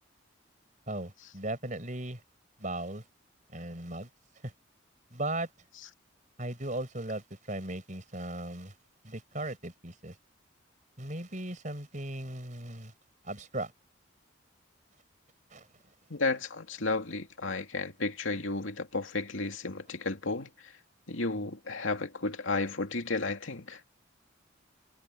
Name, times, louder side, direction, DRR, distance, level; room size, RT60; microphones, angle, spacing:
voice 1, 0.9-2.2 2.6-3.0 3.5-4.1 4.4-4.5 5.1-5.5 6.4-8.7 9.0-10.1 11.0-12.9 13.2-13.7 15.5-15.7, right 1 dB, 40° right, 5.0 m, -37 dB
voice 2, 16.1-20.7 21.1-23.8, left 3 dB, 80° left, 2.5 m, -33 dB
head